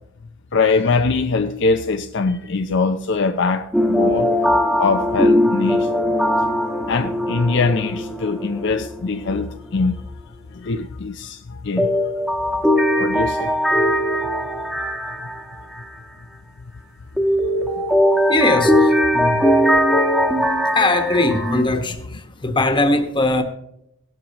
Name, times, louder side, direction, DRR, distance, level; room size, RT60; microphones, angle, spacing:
voice 1, 0.5-4.3 4.8-5.9 6.9-10.0 10.5-12.0 13.0-13.5, left 4 dB, 60° left, 0.5 m, -22 dB
sound 1, 3.7-9.1 9.3-9.4 11.8-15.9 17.2-21.6, equal, ahead, 1.2 m, -19 dB
voice 2, 18.3-23.4, left 2 dB, 25° left, 1.3 m, -21 dB
16.5 x 12.0 x 3.0 m
head